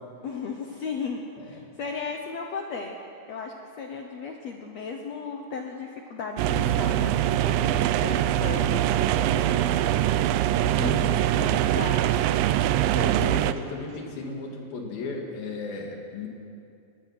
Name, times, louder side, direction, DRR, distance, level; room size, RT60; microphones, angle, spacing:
voice 1, 0.2-3.0 3.3-10.1 10.6-12.1, left 5 dB, 80° left, 2 dB, 1.5 m, -36 dB
sound 1, 6.4-13.5, right 12 dB, 90° right, 1.9 m, -23 dB
sound 2, 7.2-14.1, right 8 dB, 70° right, 1.8 m, -48 dB
voice 2, 10.8-11.2 12.9-16.3, left 3 dB, 65° left, 1 dB, 4.1 m, -35 dB
21.5 x 20.5 x 6.0 m, 2.5 s
omnidirectional pair, 4.7 m